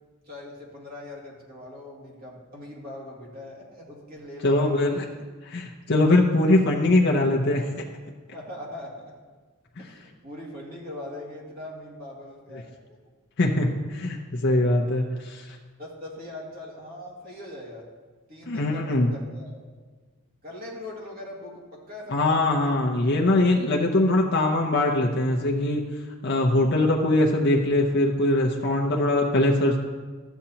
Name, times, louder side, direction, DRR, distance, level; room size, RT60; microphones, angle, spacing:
voice 1, 0.3-4.9 6.5-6.6 8.3-9.1 9.8-13.0 14.7-15.1 15.8-17.9 18.3-19.6 20.4-22.4, left 1 dB, 45° right, -3 dB, 2.0 m, -41 dB
voice 2, 4.4-5.0 5.4-7.8 13.4-15.6 18.5-19.1 22.1-25.8 26.2-29.8, left 2 dB, 50° left, -1 dB, 0.7 m, -22 dB
12.5 x 8.1 x 2.9 m, 1.4 s
head